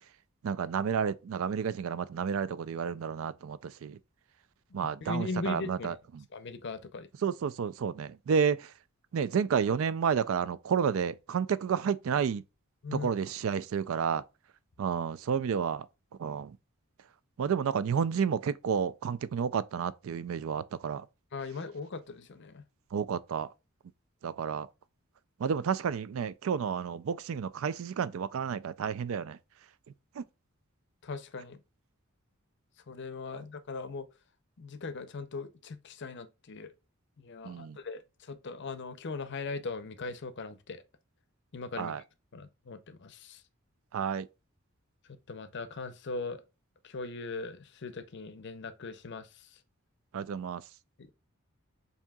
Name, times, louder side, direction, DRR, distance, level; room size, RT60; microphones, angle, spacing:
voice 1, 0.4-4.0 4.7-5.9 7.2-8.7 9.1-12.4 12.9-14.2 14.8-15.9 16.2-16.6 17.4-21.1 22.9-23.5 24.2-24.7 25.4-29.4 30.2-30.3 37.4-37.8 41.8-42.0 43.9-44.3 50.1-50.6, right 7 dB, 65° right, 0.3 m, -31 dB
voice 2, 4.7-6.0 6.3-7.1 12.8-13.1 21.3-22.6 31.0-31.6 32.9-34.1 34.6-36.7 37.2-40.8 41.5-42.0 42.3-43.4 45.1-46.4 46.8-49.6 51.0-51.1, left 3 dB, 50° left, 0.6 m, -39 dB
7.2 x 2.8 x 2.3 m
head